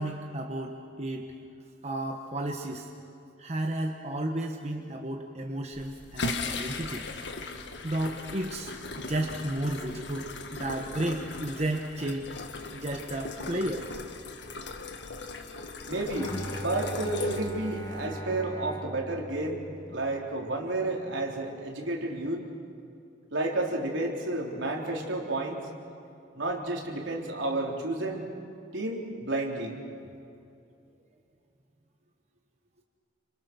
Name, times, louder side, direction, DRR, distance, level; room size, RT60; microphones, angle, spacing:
voice 1, 0.0-1.3 1.8-2.9 3.4-7.1 7.8-12.3 12.7-13.9, right 1 dB, 35° right, 2 dB, 1.3 m, -33 dB
sound 1, 5.7-18.1, left 3 dB, 60° left, 1.8 m, -38 dB
voice 2, 15.9-22.4 23.3-25.6 26.3-28.2 28.7-29.8, right 2 dB, 75° right, 0 dB, 3.8 m, -31 dB
Bowed string instrument, 16.1-20.3, equal, 20° left, 1.5 m, -39 dB
28.5 x 26.5 x 6.2 m, 2.6 s
head